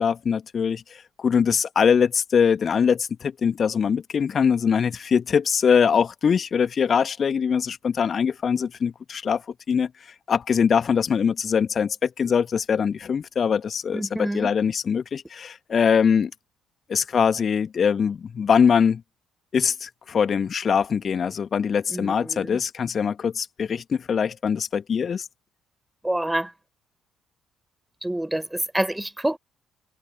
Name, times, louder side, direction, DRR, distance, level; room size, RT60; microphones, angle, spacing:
voice 1, 0.0-16.3 16.9-19.0 19.5-25.3, left 7 dB, 40° left, 1.7 m, -22 dB
voice 2, 13.9-14.5 21.9-22.6 26.0-26.5 28.0-29.4, right 1 dB, 10° right, 4.2 m, -27 dB
figure-of-eight pair, 45°, 0 cm